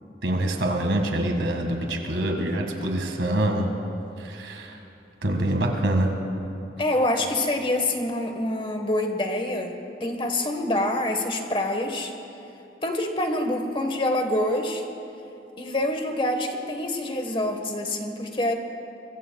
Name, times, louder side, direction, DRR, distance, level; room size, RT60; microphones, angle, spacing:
voice 1, 0.2-3.7 4.2-4.8 5.2-6.1, right 1 dB, 85° right, 2 dB, 1.8 m, -25 dB
voice 2, 6.8-12.1 12.8-14.8 15.6-18.5, left 1 dB, 30° left, 5 dB, 1.3 m, -26 dB
23.5 x 22.5 x 2.3 m, 3.0 s
head